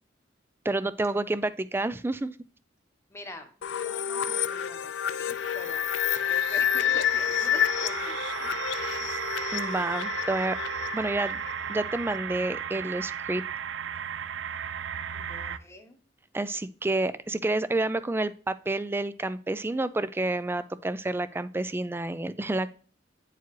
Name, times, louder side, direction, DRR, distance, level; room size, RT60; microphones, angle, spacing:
voice 1, 0.6-2.3 9.5-10.6 10.9-11.4 11.7-13.4 16.3-22.7, right 2 dB, 10° right, 15 dB, 0.3 m, -29 dB
voice 2, 3.1-3.5 3.8-4.9 5.2-8.5 15.1-16.0, left 1 dB, 15° left, 5 dB, 1.0 m, -45 dB
sound 1, 3.6-12.2, left 9 dB, 75° left, 0.4 m, -29 dB
sound 2, 5.4-15.6, right 8 dB, 80° right, 0.4 m, -35 dB
9.2 x 4.7 x 3.1 m, 0.41 s
head